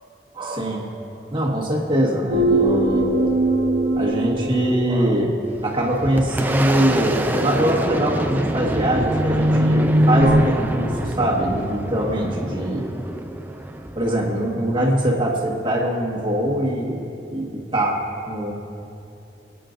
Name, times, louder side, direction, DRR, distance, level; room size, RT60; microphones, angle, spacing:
voice 1, 0.3-0.9 1.3-3.1 3.9-5.4 5.6-12.9 13.9-17.0 17.3-18.0 18.3-18.5, right 1 dB, 25° right, -3 dB, 1.5 m, -22 dB
sound 1, 2.3-5.4 7.7-10.4, right 1 dB, 50° right, 0.7 m, -21 dB
Boom, 5.5-14.9, right 1 dB, 10° right, 0.4 m, -27 dB
23.0 x 8.5 x 2.6 m, 2.7 s
head